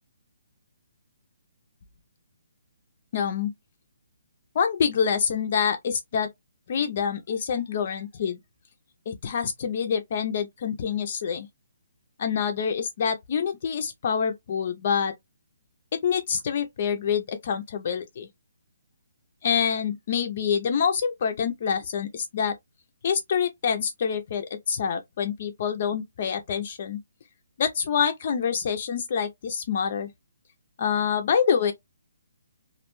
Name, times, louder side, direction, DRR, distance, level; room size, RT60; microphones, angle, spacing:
voice 1, 3.1-3.5 4.6-6.3 6.7-8.4 9.1-11.5 12.2-15.1 16.0-18.3 19.4-22.5 23.0-27.0 27.6-30.1 30.8-31.7, left 7 dB, 35° left, 0.3 m, -26 dB
2.4 x 2.1 x 3.0 m
hypercardioid pair, 175°, 0 cm